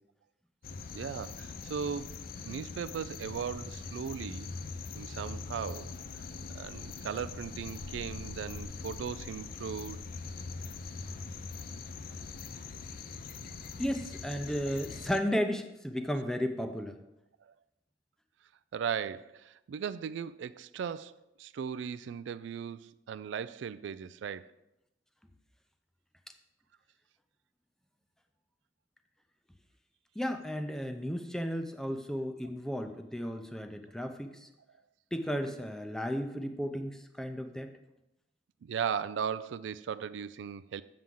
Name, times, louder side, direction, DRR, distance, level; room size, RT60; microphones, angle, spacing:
sound 1, 0.6-15.2, left 4 dB, 55° left, 0.5 m, -42 dB
voice 1, 0.9-2.1 2.4-4.5 4.9-5.9 6.5-10.0 17.5-17.6 18.7-24.5 38.6-40.8, right 7 dB, 85° right, 0.3 m, -37 dB
voice 2, 13.8-17.0 30.2-34.5 35.1-37.7, equal, 5° left, 0.5 m, -34 dB
7.6 x 7.0 x 3.7 m
head